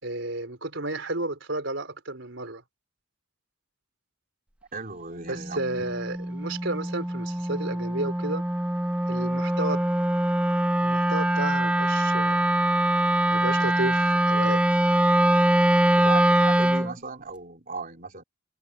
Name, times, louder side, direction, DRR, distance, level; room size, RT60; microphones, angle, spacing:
voice 1, 0.0-2.6 5.3-8.4 9.1-9.8 10.8-12.4 13.3-14.6, right 2 dB, 65° right, 4.6 m, -32 dB
voice 2, 4.7-5.9 15.9-18.2, right 4 dB, 45° right, 3.7 m, -37 dB
Wind instrument woodwind instrument, 5.3-16.9, right 1 dB, 5° right, 0.4 m, -23 dB
head